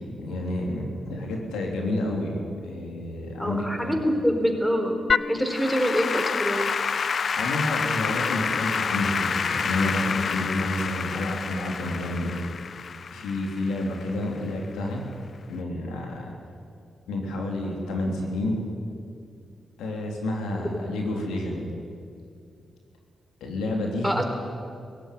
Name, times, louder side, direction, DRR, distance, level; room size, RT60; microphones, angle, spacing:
voice 1, 0.0-2.4 2.6-4.0 7.3-12.4 13.1-15.1 15.5-16.3 17.1-18.6 19.8-21.7 23.4-24.2, left 1 dB, 90° left, 1 dB, 3.3 m, -29 dB
voice 2, 3.4-5.0 5.3-6.7 20.6-20.8 24.0-24.2, equal, 5° left, 4 dB, 4.0 m, -25 dB
Applause / Keyboard (musical), 5.1-14.4, left 6 dB, 60° left, 0.5 m, -28 dB
18.5 x 16.5 x 9.4 m, 2.4 s
supercardioid pair, 50°, 0 cm